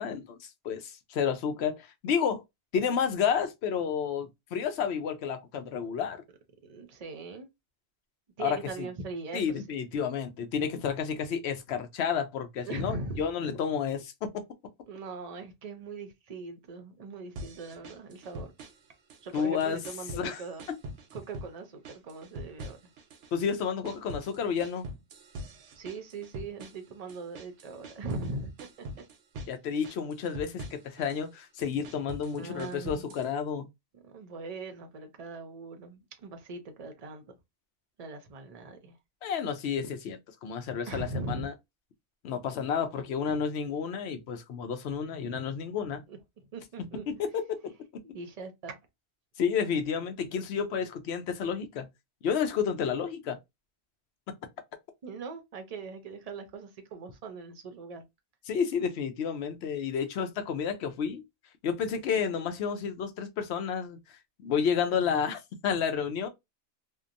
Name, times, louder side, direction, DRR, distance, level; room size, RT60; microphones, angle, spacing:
voice 1, 0.0-2.4 2.7-6.2 8.4-8.9 9.3-14.1 19.3-19.8 20.2-20.4 23.3-24.9 29.5-33.7 39.2-41.5 42.2-46.0 47.1-47.6 49.4-51.9 52.2-53.4 58.5-61.2 61.6-64.0 64.4-66.3, left 7 dB, 70° left, 0.8 m, -31 dB
voice 2, 6.6-7.5 8.4-9.5 12.6-13.2 14.9-18.5 19.2-20.7 21.1-22.8 25.8-28.5 28.8-28.9 32.4-33.1 33.9-37.2 38.0-39.0 40.9-41.5 43.3-43.4 46.1-47.1 48.1-48.8 55.0-58.0, right 3 dB, 45° right, 0.5 m, -40 dB
sound 1, 17.4-18.9 19.1-20.3 20.6-21.5 21.9-23.3 23.6-28.3 28.6-29.6 29.8-31.2 31.6-33.3, right 1 dB, 90° right, 0.9 m, -43 dB
2.8 x 2.1 x 2.4 m
omnidirectional pair, 1.2 m